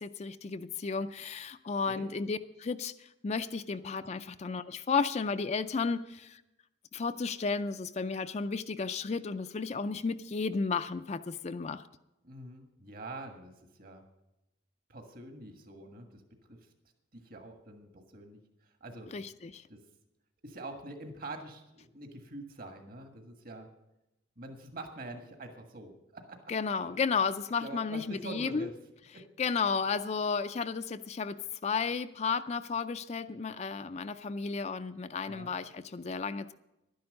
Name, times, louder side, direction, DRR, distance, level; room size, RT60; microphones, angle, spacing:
voice 1, 0.0-6.4 6.9-11.8 19.1-19.6 26.5-28.7 29.4-36.5, left 5 dB, 35° left, 10 dB, 0.4 m, -33 dB
voice 2, 12.2-14.0 14.9-16.2 16.5-16.6 17.1-18.4 18.8-19.1 19.7-19.8 20.4-23.7 24.4-26.4 27.6-28.7 29.1-29.2 35.3-35.5, right 2 dB, 50° right, 5 dB, 1.6 m, -45 dB
11.5 x 10.5 x 6.4 m, 0.91 s
head